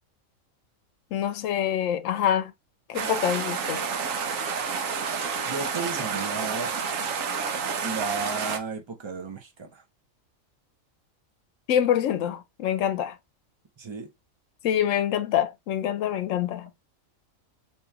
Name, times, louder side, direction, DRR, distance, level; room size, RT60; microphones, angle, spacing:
voice 1, 1.1-2.5 2.9-3.8 11.7-13.2 14.6-16.7, left 10 dB, 75° left, 0.9 m, -25 dB
sound 1, 2.9-8.6, right 5 dB, 75° right, 1.1 m, -29 dB
voice 2, 5.5-6.7 7.8-9.8 13.8-14.1, right 4 dB, 30° right, 0.6 m, -34 dB
3.0 x 2.9 x 3.4 m
omnidirectional pair, 1.4 m